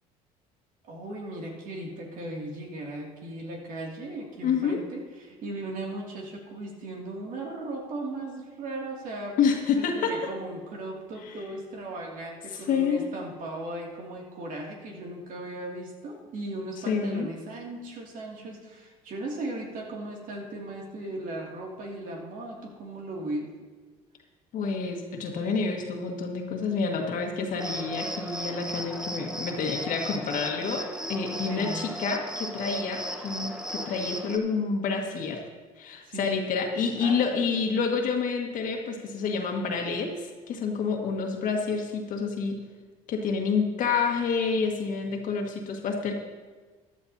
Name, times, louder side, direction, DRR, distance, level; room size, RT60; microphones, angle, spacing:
voice 1, 0.8-9.4 9.8-23.5 31.5-31.9 36.0-36.4 37.0-37.7, right 2 dB, 60° right, -1 dB, 2.5 m, -37 dB
voice 2, 4.4-4.8 9.4-10.3 12.7-13.1 16.9-17.3 24.5-35.4 35.8-42.6 43.1-46.1, left 5 dB, 60° left, 3 dB, 1.8 m, -28 dB
Cricket, 27.6-34.4, equal, 5° right, 1.1 m, -36 dB
15.5 x 11.0 x 2.8 m, 1.4 s
supercardioid pair, 80°, 15 cm